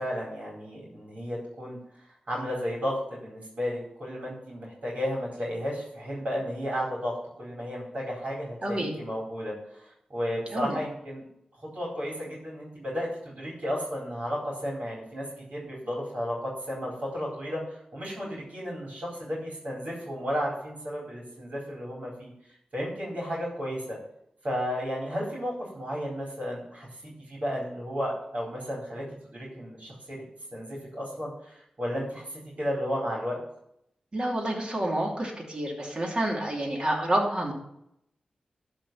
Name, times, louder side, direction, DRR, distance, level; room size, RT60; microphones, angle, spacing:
voice 1, 0.0-11.2 11.6-24.0 24.4-30.2 30.5-33.4, equal, 60° right, -5 dB, 4.3 m, -33 dB
voice 2, 8.6-8.9 10.5-10.8 34.1-37.5, right 1 dB, 40° right, -1 dB, 2.9 m, -28 dB
12.0 x 4.6 x 7.6 m, 0.76 s
cardioid pair, 55°, 3 cm